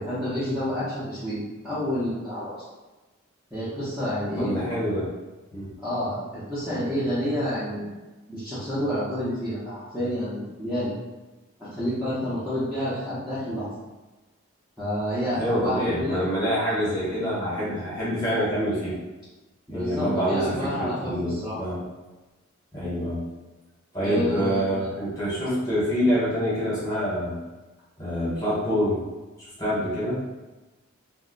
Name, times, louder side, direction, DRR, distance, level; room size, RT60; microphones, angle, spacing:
voice 1, 0.0-2.6 3.5-4.5 5.8-7.9 8.3-10.9 11.6-13.7 14.8-16.2 19.7-21.6 24.0-24.9, equal, 5° right, -14 dB, 0.7 m, -29 dB
voice 2, 4.4-5.1 5.5-5.7 15.4-18.9 19.7-21.8 22.7-23.2 23.9-27.4 28.0-29.0 29.6-30.3, equal, 15° left, -9 dB, 1.0 m, -26 dB
2.6 x 2.1 x 3.8 m, 1.1 s
head